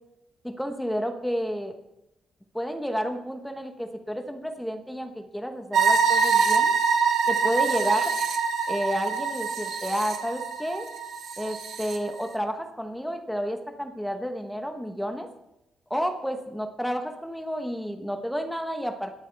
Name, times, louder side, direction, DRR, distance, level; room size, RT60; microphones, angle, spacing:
voice 1, 0.4-1.7 2.5-6.7 7.3-8.1 8.7-10.9 11.4-15.3 15.9-19.1, equal, ahead, 5 dB, 1.2 m, -31 dB
sound 1, 5.7-12.0, right 5 dB, 65° right, 1.5 m, -24 dB
21.5 x 7.3 x 3.5 m, 0.89 s
wide cardioid pair, 170°, 0 cm